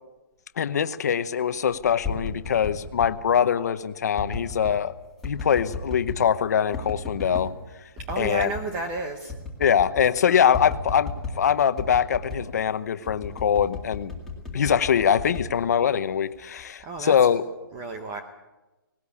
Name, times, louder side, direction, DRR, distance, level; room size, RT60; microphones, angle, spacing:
voice 1, 0.6-4.9 5.2-7.5 8.2-8.5 9.6-14.1 14.5-17.4, left 8 dB, 45° left, 12 dB, 0.9 m, -23 dB
sound 1, 1.8-3.1 4.1-4.8 5.2-6.3 6.7-7.5 8.0-8.7 9.0-9.1 9.3-10.1 10.5-11.4 11.8-12.5 13.0-16.2 16.6-17.0, left 3 dB, ahead, 2.2 m, -34 dB
voice 2, 8.1-9.3 16.8-17.1 17.7-18.2, right 3 dB, 15° right, 6 dB, 0.8 m, -31 dB
19.0 x 18.5 x 8.4 m, 1.1 s
hypercardioid pair, 175°, 12 cm